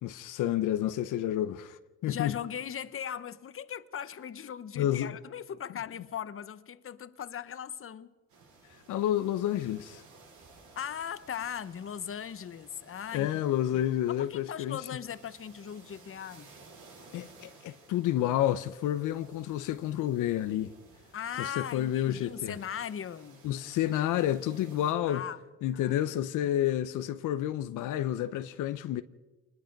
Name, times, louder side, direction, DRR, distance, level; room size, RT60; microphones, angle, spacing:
voice 1, 0.0-2.3 4.8-5.2 8.9-10.0 13.1-14.9 17.1-20.7 21.4-22.6 23.4-25.3 25.6-29.0, left 12 dB, 85° left, 0.8 m, -30 dB
voice 2, 2.0-8.1 10.8-13.4 13.7-13.8 14.1-16.5 21.1-23.4 25.1-25.4 25.7-26.0 26.4-26.5, left 9 dB, 45° left, 1.1 m, -39 dB
sound 1, 8.3-24.9, right 3 dB, 80° right, 7.2 m, -57 dB
26.0 x 20.5 x 5.3 m
cardioid pair, 90°, 30 cm